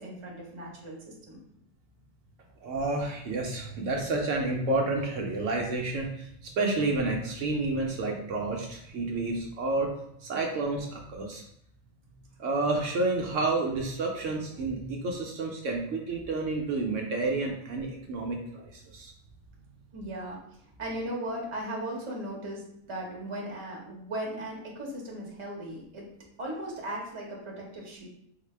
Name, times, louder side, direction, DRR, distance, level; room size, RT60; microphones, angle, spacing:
voice 1, 0.0-1.4 19.9-20.4 20.8-26.1 26.4-28.1, right 1 dB, 30° right, -2 dB, 0.7 m, -37 dB
voice 2, 2.6-9.9 10.2-11.4 12.4-19.1, right 2 dB, 70° right, 1 dB, 0.9 m, -30 dB
3.9 x 2.1 x 3.2 m, 0.74 s
omnidirectional pair, 1.5 m